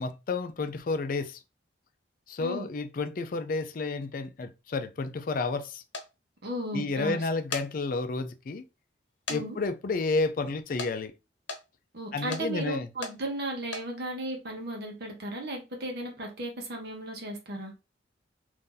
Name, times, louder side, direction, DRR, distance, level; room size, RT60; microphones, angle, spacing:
voice 1, 0.0-1.4 2.3-5.8 6.7-8.6 9.3-11.1 12.1-12.9, left 3 dB, 50° left, 0.4 m, -31 dB
sound 1, 5.9-6.1 7.3-7.7 8.2-8.3 9.3-9.4 9.7-9.8 10.8-10.9 11.5-11.6 12.3-12.5 13.0-13.2 13.6-13.9, left 4 dB, 90° left, 0.8 m, -35 dB
voice 2, 6.4-7.2 9.3-9.6 11.9-17.7, right 1 dB, 60° right, 0.9 m, -35 dB
2.7 x 2.6 x 3.8 m
head